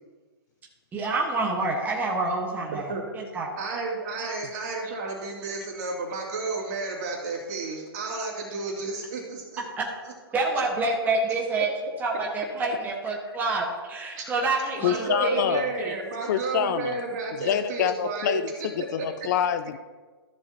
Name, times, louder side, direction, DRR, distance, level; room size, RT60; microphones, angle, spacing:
voice 1, 0.9-3.6 10.3-11.7 12.0-15.9, right 3 dB, 15° right, -2 dB, 1.3 m, -28 dB
voice 2, 2.7-3.0 3.6-9.6 10.5-10.6 14.1-14.2 14.8-18.4 18.8-19.3, right 3 dB, 45° right, -2 dB, 2.7 m, -32 dB
voice 3, 14.8-15.7 16.3-17.0 17.4-19.8, left 9 dB, 45° left, 12 dB, 0.5 m, -26 dB
14.0 x 7.2 x 2.9 m, 1.4 s
hypercardioid pair, 130°, 13 cm